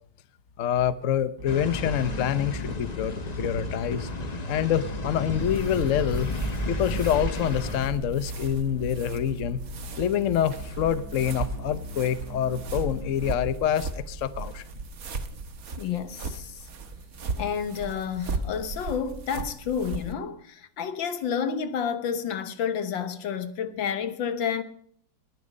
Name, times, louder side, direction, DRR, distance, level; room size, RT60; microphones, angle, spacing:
voice 1, 0.6-4.1 4.5-6.3 6.7-9.6 10.0-14.6, left 9 dB, 55° left, 0.9 m, -26 dB
sound 1, 1.4-13.4, equal, 65° right, 5.5 m, -39 dB
sound 2, 1.5-7.9, left 3 dB, 30° left, 0.9 m, -33 dB
sound 3, 5.1-20.1, right 4 dB, 50° right, 1.6 m, -36 dB
voice 2, 15.8-16.6 17.4-24.6, left 7 dB, 80° left, 1.9 m, -30 dB
20.0 x 11.0 x 5.3 m
omnidirectional pair, 2.1 m